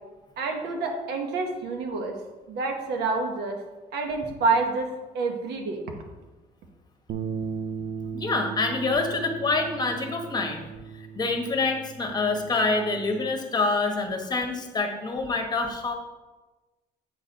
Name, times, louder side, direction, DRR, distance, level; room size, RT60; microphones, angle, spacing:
voice 1, 0.4-2.1 2.5-3.6 3.9-5.8, right 3 dB, 75° right, 2 dB, 1.0 m, -28 dB
sound 1, 7.1-13.3, right 6 dB, 60° right, 0.5 m, -37 dB
voice 2, 8.1-10.7 11.1-15.9, left 3 dB, 25° left, 4 dB, 1.1 m, -26 dB
8.0 x 4.0 x 4.0 m, 1.2 s
cardioid pair, 110°, 17 cm